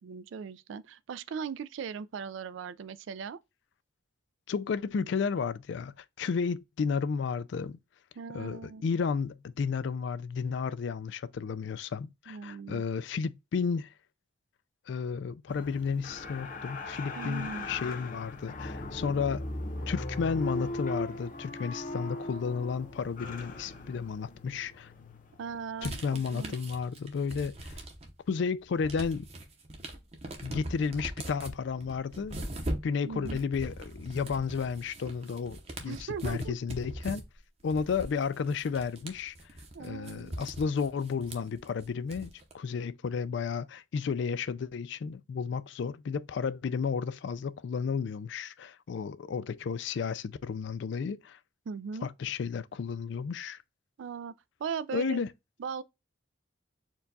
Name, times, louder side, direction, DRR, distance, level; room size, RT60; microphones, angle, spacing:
voice 1, 0.0-3.4 8.2-8.8 12.3-12.8 17.2-17.7 25.4-26.5 33.0-33.4 35.9-36.5 39.7-40.4 51.7-52.1 54.0-54.3 54.6-55.2 55.6-55.8, right 6 dB, 70° right, 0.3 m, -38 dB
voice 2, 4.5-7.8 8.3-13.9 14.9-19.5 19.9-24.9 25.8-27.8 28.3-29.3 30.4-32.4 32.8-37.2 37.6-39.3 39.8-51.4 52.0-53.6 54.9-55.3, left 5 dB, 60° left, 0.3 m, -32 dB
sound 1, 15.5-26.9 27.2-27.3, left 2 dB, 40° left, 0.7 m, -39 dB
sound 2, 25.8-28.2 28.6-42.5, right 1 dB, 30° right, 0.8 m, -41 dB
4.5 x 2.3 x 3.9 m
head